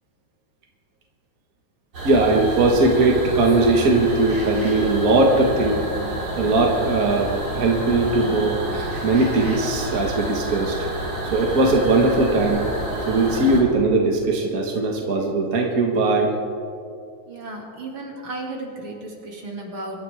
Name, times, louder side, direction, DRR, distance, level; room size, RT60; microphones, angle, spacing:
sound 1, 1.9-13.6, right 1 dB, 90° right, 4.9 m, -29 dB
voice 1, 2.0-5.9 6.4-10.8 11.3-12.7 13.1-16.3, right 2 dB, 45° right, 0 dB, 1.8 m, -19 dB
voice 2, 17.3-20.0, right 2 dB, 75° right, -1 dB, 3.3 m, -34 dB
24.0 x 12.5 x 3.5 m, 2.4 s
omnidirectional pair, 2.3 m